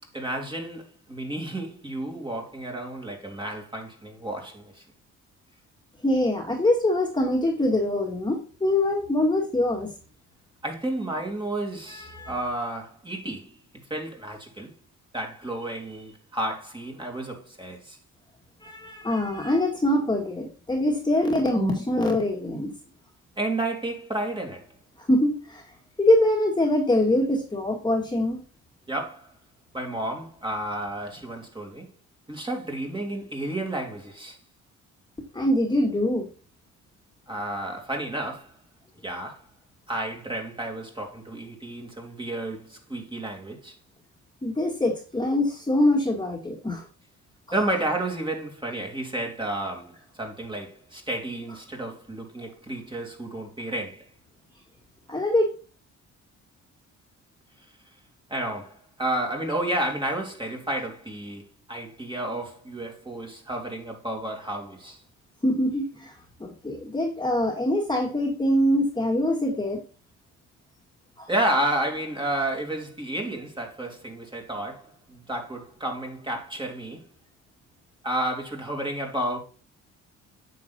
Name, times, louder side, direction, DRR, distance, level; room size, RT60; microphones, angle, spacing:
voice 1, 0.1-4.8 10.6-13.6 13.9-14.7 15.1-18.0 23.4-24.7 28.9-29.3 29.7-31.9 32.3-34.4 37.3-38.5 39.0-39.4 39.9-43.7 47.5-54.1 58.3-65.0 71.3-77.1 78.0-79.4, right 1 dB, 15° right, 2.9 m, -31 dB
voice 2, 6.0-9.9 12.1-12.3 18.6-22.7 25.1-25.6 26.0-28.4 35.3-36.3 44.4-46.8 55.1-55.5 65.4-66.1 66.4-69.8 71.2-71.3, left 1 dB, 15° left, 2.2 m, -24 dB
9.3 x 6.7 x 2.5 m
cardioid pair, 90°, 30 cm